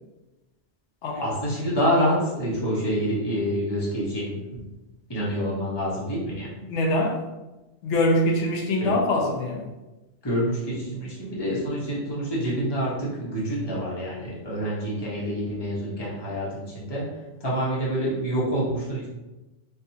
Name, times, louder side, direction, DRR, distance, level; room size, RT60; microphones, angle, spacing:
voice 1, 1.2-4.6 5.1-6.6 8.8-8.9 10.2-17.0 17.4-19.1, equal, 25° left, -7 dB, 1.0 m, -27 dB
voice 2, 6.7-7.2 7.8-9.7, left 1 dB, 85° left, 0 dB, 0.9 m, -23 dB
4.4 x 2.5 x 2.7 m, 1.1 s
omnidirectional pair, 1.2 m